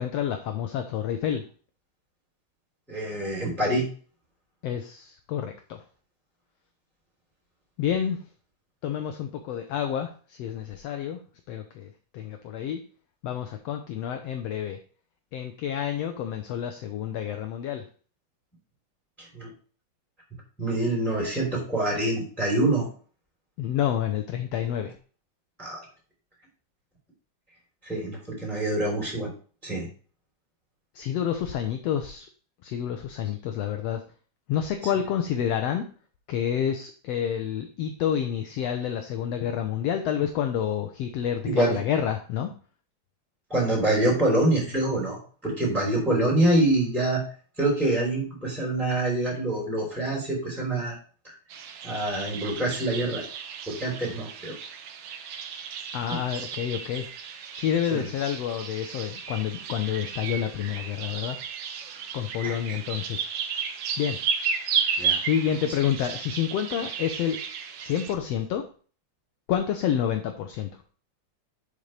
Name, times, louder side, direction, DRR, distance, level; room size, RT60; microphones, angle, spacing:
voice 1, 0.0-1.4 4.6-5.8 7.8-8.2 8.8-11.2 11.5-12.8 13.2-14.8 15.3-17.8 23.6-24.9 31.0-32.3 32.6-34.0 34.5-35.8 36.3-42.5 55.9-57.1 57.5-61.4 62.1-63.3 64.0-64.2 65.2-67.4 67.8-68.7 69.5-70.7, left 9 dB, 70° left, 6 dB, 1.7 m, -28 dB
voice 2, 2.9-3.9 19.2-19.5 20.6-22.9 25.6-25.8 27.8-29.3 29.6-29.9 41.4-41.8 43.5-47.2 47.6-51.0 51.2-51.3 51.8-53.2 53.7-54.5 56.1-56.2 57.9-58.0 62.4-62.5 65.0-65.2, right 1 dB, ahead, -2 dB, 3.2 m, -25 dB
sound 1, 51.5-68.1, right 7 dB, 65° right, 1.6 m, -33 dB
11.0 x 5.3 x 3.3 m, 0.40 s
omnidirectional pair, 3.3 m